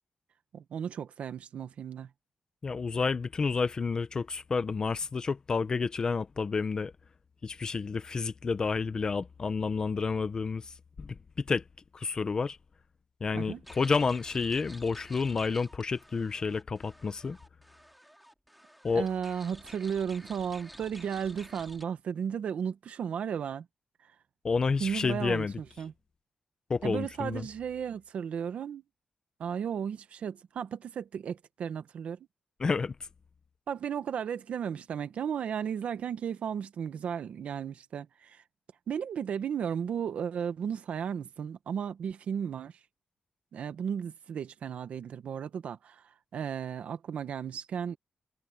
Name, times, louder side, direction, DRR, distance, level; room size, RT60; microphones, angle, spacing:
voice 1, 0.5-2.1 13.3-13.6 18.9-23.7 24.8-25.9 26.8-28.8 29.4-32.2 33.7-38.4 38.9-42.7 43.5-46.0 46.3-48.0, right 7 dB, 70° right, 1.4 m, -34 dB
voice 2, 2.6-6.9 7.4-11.6 11.9-12.6 13.2-17.4 18.8-19.1 24.4-25.5 26.7-27.5 32.6-32.9, left 4 dB, 35° left, 0.8 m, -30 dB
sound 1, 13.6-21.8, equal, ahead, 2.3 m, -52 dB
wide cardioid pair, 175°, 2 cm